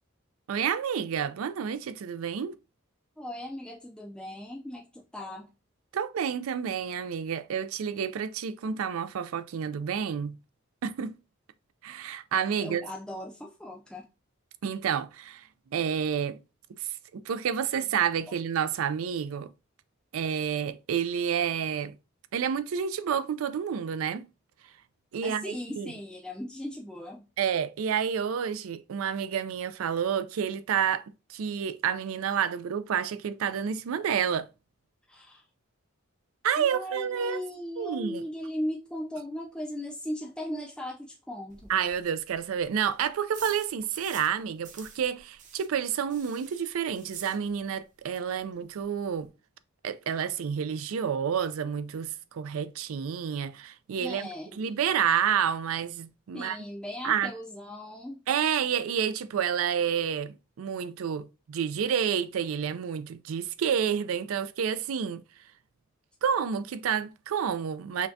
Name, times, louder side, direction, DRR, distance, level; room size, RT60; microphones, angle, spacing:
voice 1, 0.5-2.6 5.9-10.4 10.8-11.2 11.8-12.8 14.6-15.5 15.7-16.4 16.8-19.5 20.1-21.9 22.3-24.2 25.1-25.9 27.4-31.0 31.3-34.5 36.4-37.4 37.8-38.2 41.7-49.3 49.8-54.3 54.6-56.6 57.0-57.3 58.3-65.2 66.2-68.1, right 8 dB, 80° right, 0.4 m, -29 dB
voice 2, 3.2-5.5 12.5-14.1 25.2-27.3 35.1-35.4 36.6-41.8 54.0-55.0 56.3-58.2, equal, 5° left, 0.3 m, -38 dB
sound 1, 41.5-44.4 44.6-47.8 48.1-48.2 48.5-48.6 48.8-49.3, right 6 dB, 35° right, 0.6 m, -49 dB
5.7 x 2.2 x 2.6 m
head